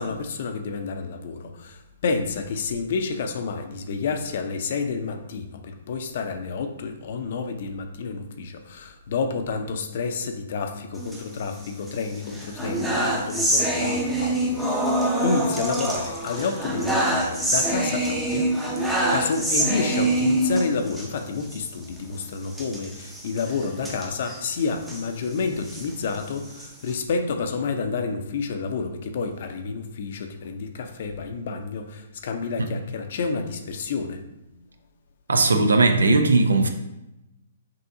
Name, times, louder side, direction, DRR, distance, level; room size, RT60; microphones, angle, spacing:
voice 1, 0.0-14.8 15.2-18.5 18.8-34.2, left 4 dB, 55° left, 0.6 m, -29 dB
sound 1, 11.0-11.9 12.3-21.1 21.4-21.6 21.8-22.0 22.5-25.0 25.5-26.9, right 1 dB, 5° right, 0.7 m, -25 dB
voice 2, 35.3-36.7, right 3 dB, 85° right, 0.5 m, -18 dB
5.6 x 2.7 x 2.7 m
hypercardioid pair, 135°, 0 cm